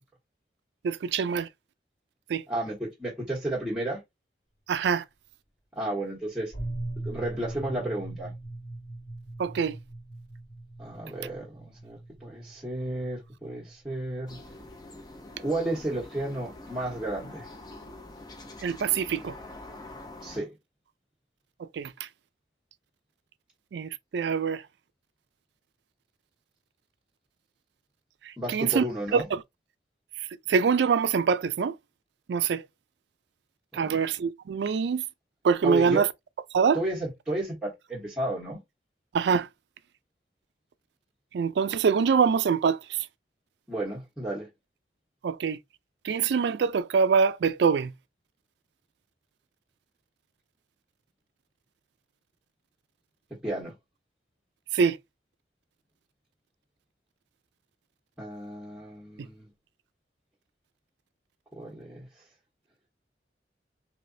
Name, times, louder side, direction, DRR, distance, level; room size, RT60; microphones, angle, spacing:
voice 1, 0.8-1.5 2.3-2.4 4.7-5.0 9.4-9.8 18.6-19.4 21.6-21.9 23.7-24.6 28.3-28.8 29.1-29.4 30.5-31.7 32.3-32.6 33.7-35.0 35.4-36.1 36.5-36.8 39.1-39.5 41.3-43.0 45.2-45.6 46.0-47.9 54.7-55.0, right 6 dB, 75° right, 0.3 m, -24 dB
voice 2, 2.5-4.0 5.8-6.5 7.0-8.3 10.8-14.4 15.4-17.5 20.2-20.5 28.4-29.3 33.7-34.0 35.6-36.0 36.7-38.6 43.7-44.5 53.3-53.7 58.2-59.5 61.6-62.1, right 1 dB, 5° right, 1.0 m, -32 dB
sound 1, 6.5-14.6, right 2 dB, 50° left, 1.8 m, -40 dB
sound 2, 14.3-20.4, left 2 dB, 20° left, 0.5 m, -45 dB
3.2 x 2.9 x 2.6 m
head